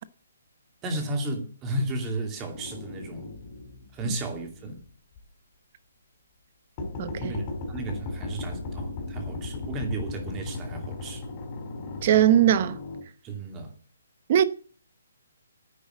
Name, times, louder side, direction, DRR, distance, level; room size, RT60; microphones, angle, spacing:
voice 1, 0.8-3.3 3.9-4.8 7.2-11.2 13.2-13.7, right 2 dB, 15° right, 2.5 m, -33 dB
sound 1, 2.5-4.8 5.2-5.3 6.8-13.0, left 2 dB, 20° left, 4.6 m, -36 dB
voice 2, 12.0-12.8 14.3-14.4, right 11 dB, 35° right, 1.0 m, -19 dB
10.0 x 9.5 x 8.1 m
hypercardioid pair, 170°, 0 cm